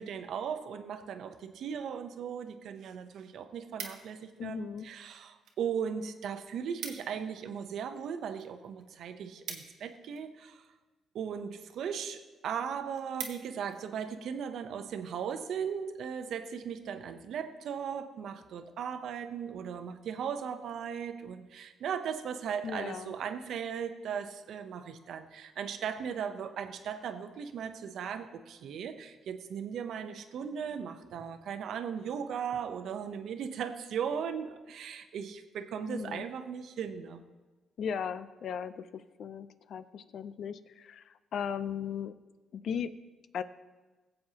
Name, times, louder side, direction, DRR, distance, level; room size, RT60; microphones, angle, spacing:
voice 1, 0.0-10.6 11.1-37.2, right 7 dB, 70° right, 8 dB, 0.8 m, -37 dB
sound 1, 2.6-2.7 3.0-4.4 5.1-5.6 5.9-6.0 6.3-6.4 6.6-7.2 7.6-10.4 11.1-11.5 12.0-12.1 12.4-12.5 12.8-13.8 14.3-14.5, right 7 dB, 85° right, 1.2 m, -44 dB
voice 2, 4.4-4.9 22.6-23.1 35.9-36.3 37.8-42.1 42.5-42.9 43.3-43.4, left 7 dB, 65° left, 13 dB, 0.5 m, -37 dB
21.0 x 7.7 x 2.9 m, 1.2 s
cardioid pair, 90°, 0 cm